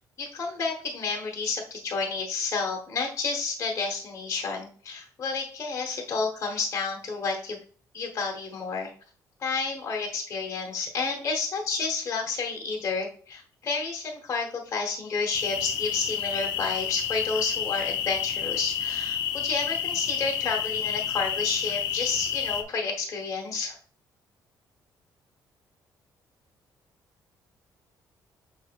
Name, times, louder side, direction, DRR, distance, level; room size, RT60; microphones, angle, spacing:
voice 1, 0.2-7.6 7.9-8.9 9.4-23.8, left 4 dB, 40° left, 1 dB, 1.2 m, -30 dB
sound 1, 15.3-22.6, left 9 dB, 85° left, 0.7 m, -30 dB
6.4 x 3.3 x 4.4 m, 0.43 s
cardioid pair, 140°, 7 cm